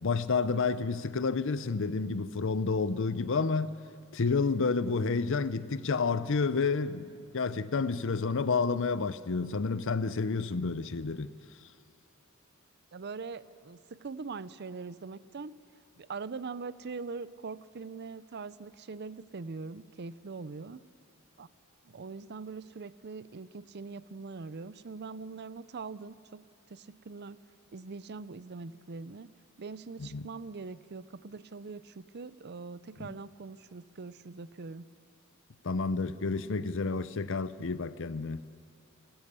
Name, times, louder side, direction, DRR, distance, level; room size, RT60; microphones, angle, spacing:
voice 1, 0.0-3.7 4.1-11.3 30.0-30.3 33.0-33.1 35.6-38.4, left 4 dB, 65° left, 0.7 m, -30 dB
voice 2, 12.9-15.5 16.0-20.8 21.4-21.5 21.8-26.4 26.7-27.4 27.7-29.3 29.6-34.9, right 4 dB, 50° right, 0.5 m, -42 dB
29.0 x 13.5 x 6.9 m
head